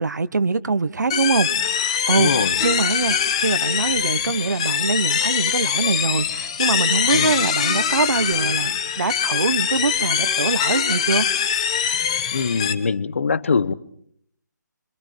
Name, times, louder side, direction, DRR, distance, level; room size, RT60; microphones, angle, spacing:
voice 1, 0.0-11.3, right 4 dB, 65° right, 14 dB, 1.3 m, -23 dB
sound 1, 1.1-12.7, left 8 dB, 15° left, 1.1 m, -23 dB
voice 2, 2.1-2.6 7.1-7.3 12.3-13.7, left 5 dB, 40° left, 17 dB, 1.0 m, -23 dB
26.5 x 26.0 x 4.7 m, 0.65 s
hypercardioid pair, 175°, 10 cm